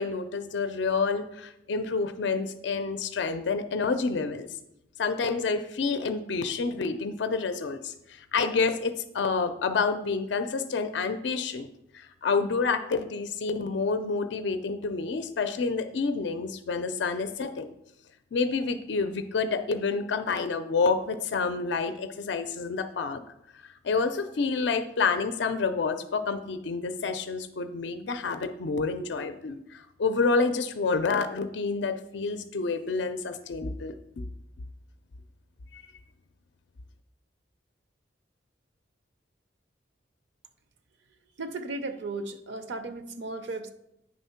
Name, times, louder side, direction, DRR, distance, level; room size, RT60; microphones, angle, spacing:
voice 1, 0.0-4.5 5.0-11.7 11.9-17.7 18.3-23.2 23.5-34.2 35.7-35.8, left 4 dB, 70° left, 9 dB, 0.4 m, -28 dB
voice 2, 41.4-43.7, right 2 dB, 70° right, 9 dB, 0.5 m, -35 dB
8.6 x 3.5 x 5.6 m, 0.84 s
head